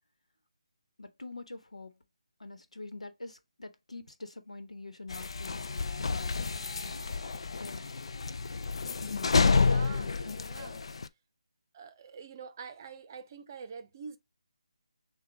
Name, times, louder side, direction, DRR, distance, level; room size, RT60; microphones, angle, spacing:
voice 1, 1.0-2.0 2.4-7.1 7.6-7.9, left 3 dB, 90° left, 1.0 m, -46 dB
sound 1, 5.1-11.1, left 4 dB, 55° left, 0.4 m, -30 dB
voice 2, 9.6-10.8 11.7-14.2, right 6 dB, 30° right, 0.7 m, -46 dB
6.7 x 2.3 x 3.3 m
figure-of-eight pair, 160°, 3 cm